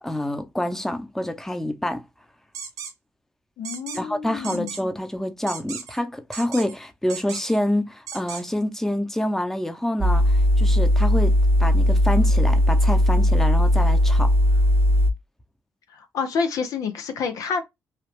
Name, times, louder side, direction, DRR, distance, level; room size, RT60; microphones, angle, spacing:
voice 1, 0.0-2.0 3.9-11.3 11.6-14.3, left 1 dB, 5° left, 0.7 m, -27 dB
sound 1, 2.5-2.9 3.6-4.0 4.4-4.8 5.5-6.0 6.3-6.7 7.1-7.6 8.1-8.4, right 7 dB, 75° right, 0.8 m, -35 dB
voice 2, 3.6-4.7 15.9-17.6, left 5 dB, 70° left, 0.5 m, -28 dB
sound 2, 10.0-15.1, left 1 dB, 40° right, 0.5 m, -18 dB
3.1 x 2.3 x 3.1 m
supercardioid pair, 50°, 6 cm